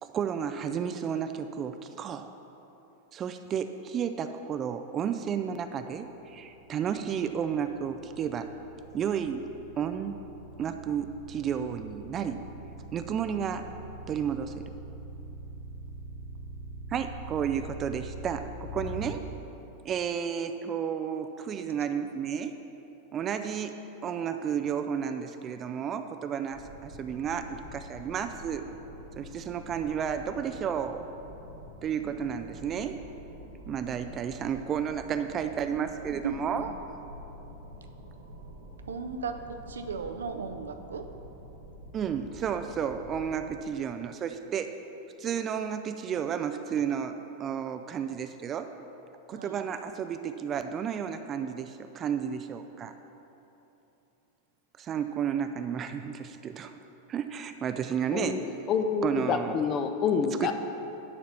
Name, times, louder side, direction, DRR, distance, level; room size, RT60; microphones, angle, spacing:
voice 1, 0.0-2.3 3.1-8.5 8.9-9.4 9.8-10.2 10.6-12.4 12.9-13.7 14.1-14.6 16.9-19.2 19.8-22.5 23.1-28.6 29.2-31.1 31.8-33.0 33.7-36.7 41.9-44.7 45.2-48.7 49.3-52.9 54.8-56.7 57.1-58.4 59.0-59.6 60.4-60.5, right 8 dB, 30° right, 8 dB, 0.4 m, -32 dB
sound 1, 6.1-19.1, right 1 dB, 85° left, 0.9 m, -43 dB
sound 2, 26.5-43.5, equal, 90° right, 1.7 m, -47 dB
voice 2, 36.2-36.7 38.9-41.1 49.3-49.6, right 5 dB, 70° right, 7 dB, 0.6 m, -36 dB
voice 3, 58.1-60.5, left 6 dB, 35° left, 7 dB, 0.7 m, -28 dB
11.0 x 4.3 x 7.2 m, 3.0 s
figure-of-eight pair, 90°, 0 cm